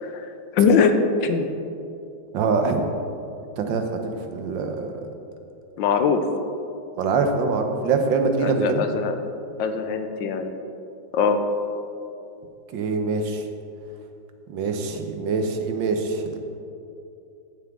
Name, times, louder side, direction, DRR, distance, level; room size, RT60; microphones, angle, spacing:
voice 1, 0.5-0.9 1.2-1.5 5.8-6.2 8.4-9.2 9.6-10.5 11.1-11.4, left 6 dB, 80° left, 7 dB, 1.4 m, -21 dB
voice 2, 2.3-2.9 3.6-4.9 7.0-8.8 12.7-13.4 14.5-16.4, right 4 dB, 80° right, 5 dB, 1.6 m, -24 dB
14.5 x 7.5 x 3.5 m, 2.7 s
omnidirectional pair, 2.0 m